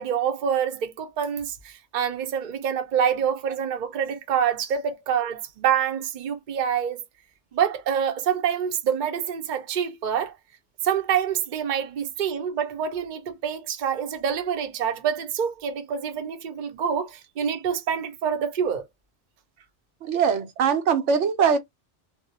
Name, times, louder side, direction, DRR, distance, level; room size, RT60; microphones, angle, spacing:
voice 1, 0.0-7.0 7.5-10.3 10.8-18.8, right 8 dB, 50° right, 0.6 m, -26 dB
voice 2, 20.0-21.6, right 6 dB, 80° right, 0.9 m, -21 dB
2.3 x 2.0 x 2.7 m
omnidirectional pair, 1.2 m